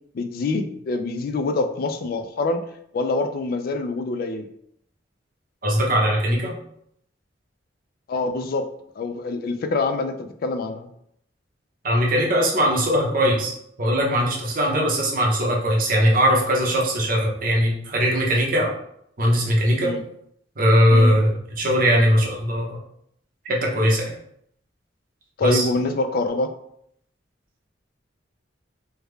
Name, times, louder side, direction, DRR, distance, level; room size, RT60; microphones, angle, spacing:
voice 1, 0.1-2.6 2.9-4.5 8.1-8.7 9.0-10.9 19.8-20.0 20.9-21.2 25.4-26.5, left 2 dB, 55° left, 8 dB, 0.3 m, -25 dB
voice 2, 5.6-6.6 11.8-13.5 13.8-18.7 19.2-19.9 20.6-22.8 23.4-24.1 25.4-25.7, equal, 50° right, -1 dB, 0.8 m, -20 dB
3.4 x 2.2 x 3.2 m, 0.71 s
head